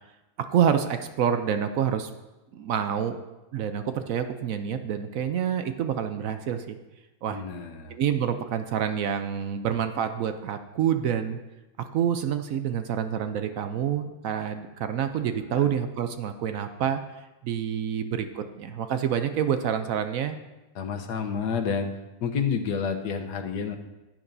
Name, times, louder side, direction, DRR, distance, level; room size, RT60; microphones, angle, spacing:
voice 1, 0.4-2.1 2.5-3.2 3.5-6.8 7.2-7.4 7.9-11.4 11.8-17.0 17.4-20.4, right 8 dB, 70° right, 8 dB, 0.9 m, -27 dB
voice 2, 7.3-8.0 15.5-15.6 20.7-21.9 22.2-23.8, left 6 dB, 85° left, 5 dB, 1.4 m, -29 dB
15.5 x 8.9 x 2.7 m, 1.1 s
omnidirectional pair, 1.7 m